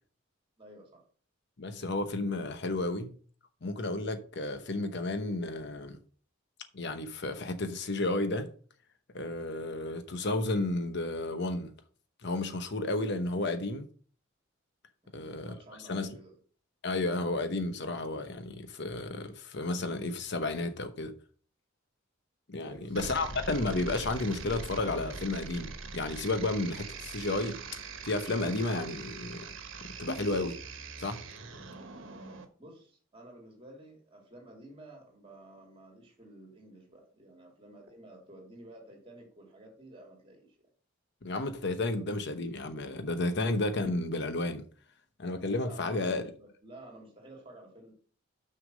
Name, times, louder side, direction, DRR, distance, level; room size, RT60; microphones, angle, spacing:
voice 1, 0.6-1.0 15.0-16.4 22.6-23.3 32.6-40.5 45.6-47.9, right 1 dB, 25° right, 2.8 m, -52 dB
voice 2, 1.6-3.1 3.6-6.0 6.7-8.5 9.1-11.7 12.2-13.9 15.1-16.2 16.8-21.1 22.5-27.6 28.0-29.5 30.0-30.6 31.0-31.2 41.2-44.6 45.2-46.2, left 2 dB, 60° left, 0.9 m, -32 dB
sound 1, 22.9-32.4, right 4 dB, 70° right, 1.3 m, -42 dB
6.3 x 5.7 x 6.3 m
head